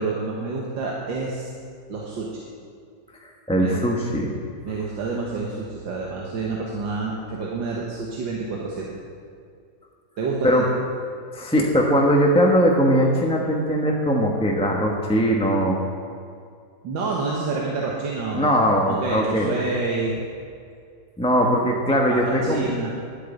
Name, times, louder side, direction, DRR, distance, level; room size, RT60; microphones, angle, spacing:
voice 1, 0.0-1.5 1.9-2.4 3.6-3.8 4.6-9.0 10.2-10.7 16.8-18.5 18.9-20.1 22.1-22.9, right 3 dB, 85° right, -3 dB, 2.1 m, -28 dB
voice 2, 3.2-4.3 10.4-10.6 11.3-15.8 18.3-19.5 21.2-22.7, equal, 5° left, -1 dB, 0.9 m, -20 dB
11.0 x 8.7 x 8.2 m, 2.3 s
omnidirectional pair, 2.0 m